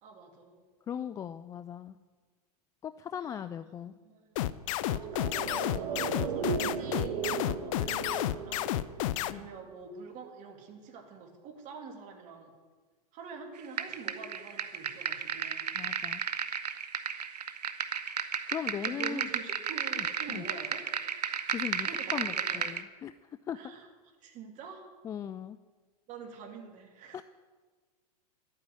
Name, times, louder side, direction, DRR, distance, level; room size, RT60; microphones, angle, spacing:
voice 1, 0.0-0.6 3.2-4.4 4.9-12.5 13.1-15.6 18.8-20.8 21.8-22.6 23.5-23.9 24.2-24.9 26.1-27.2, right 5 dB, 40° right, 3 dB, 2.7 m, -46 dB
voice 2, 0.9-2.0 2.8-3.9 9.3-9.4 15.8-16.2 18.5-19.3 20.0-20.5 21.5-23.1 23.5-23.6 25.0-25.6 27.1-27.2, left 9 dB, 15° left, 12 dB, 0.3 m, -38 dB
sound 1, 4.4-9.3, left 14 dB, 55° left, 0.6 m, -30 dB
sound 2, 4.8-9.4 9.6-9.7, right 7 dB, 60° right, 1.7 m, -36 dB
sound 3, 13.8-22.8, right 7 dB, 85° right, 1.0 m, -34 dB
12.0 x 9.2 x 9.5 m, 1.4 s
hypercardioid pair, 115°, 20 cm